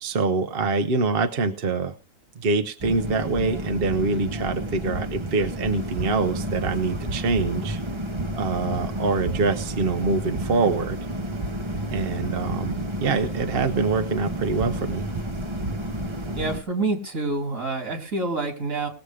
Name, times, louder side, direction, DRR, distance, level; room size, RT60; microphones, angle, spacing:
voice 1, 0.0-1.9 2.4-7.8 8.4-11.0 11.9-15.0, right 4 dB, 50° right, 7 dB, 1.0 m, -25 dB
sound 1, 2.8-16.6, right 1 dB, 25° right, 0.9 m, -30 dB
voice 2, 16.3-18.9, right 3 dB, 75° right, 4 dB, 3.1 m, -27 dB
19.5 x 7.1 x 4.9 m, 0.33 s
omnidirectional pair, 1.4 m